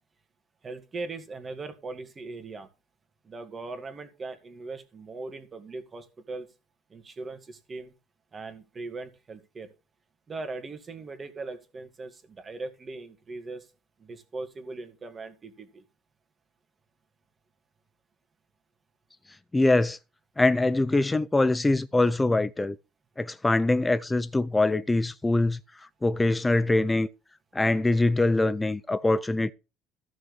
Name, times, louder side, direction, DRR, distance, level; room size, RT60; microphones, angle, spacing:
voice 1, 0.6-2.7 3.2-6.5 6.9-7.9 8.3-9.7 10.3-13.7 14.0-15.8, right 3 dB, 25° right, 2.1 m, -39 dB
voice 2, 19.5-20.0 20.4-22.8 23.2-27.1 27.5-29.5, left 2 dB, 10° left, 0.4 m, -23 dB
14.5 x 6.3 x 3.2 m
cardioid pair, 135°, 0 cm